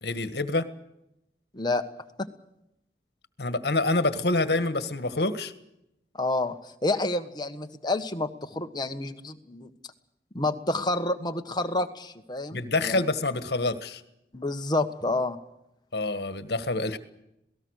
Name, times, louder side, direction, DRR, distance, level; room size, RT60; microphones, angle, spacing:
voice 1, 0.0-0.7 3.4-5.5 12.5-14.0 15.9-17.0, left 2 dB, 65° left, 11 dB, 1.7 m, -27 dB
voice 2, 6.2-6.6 6.8-9.7 10.3-13.0 14.3-15.4, left 2 dB, 25° left, 7 dB, 1.4 m, -29 dB
27.0 x 18.5 x 6.6 m, 0.83 s
head